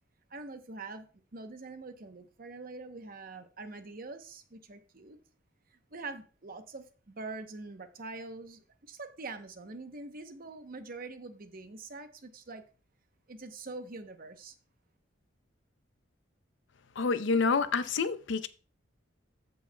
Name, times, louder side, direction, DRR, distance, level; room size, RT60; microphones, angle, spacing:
voice 1, 0.3-1.1 1.3-5.2 5.7-12.6 13.3-14.5, right 3 dB, 45° right, 0.8 m, -44 dB
voice 2, 17.0-18.5, left 4 dB, 65° left, 0.5 m, -28 dB
14.5 x 5.4 x 2.2 m
head